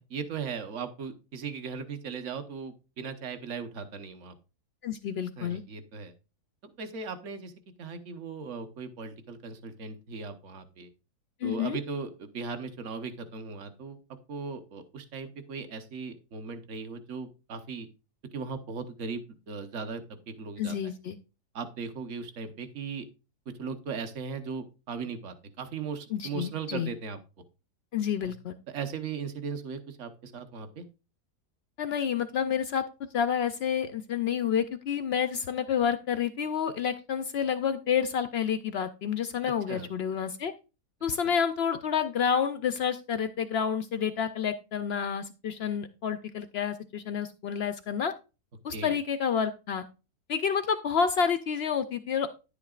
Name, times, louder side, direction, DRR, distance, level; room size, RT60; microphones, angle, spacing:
voice 1, 0.0-4.3 5.4-6.1 6.6-7.5 7.8-10.9 11.4-14.0 14.3-17.9 18.3-20.9 21.5-23.1 23.6-27.2 28.2-28.3 28.7-30.8 39.7-39.9 48.7-48.9, right 5 dB, 50° right, 9 dB, 1.2 m, -38 dB
voice 2, 4.8-5.6 11.4-11.8 20.6-21.2 26.1-26.9 27.9-28.6 31.8-32.8 33.1-40.5 41.0-48.1 48.6-49.8 50.3-52.3, left 7 dB, 90° left, 10 dB, 0.5 m, -29 dB
10.5 x 8.6 x 2.4 m, 0.30 s
omnidirectional pair, 1.7 m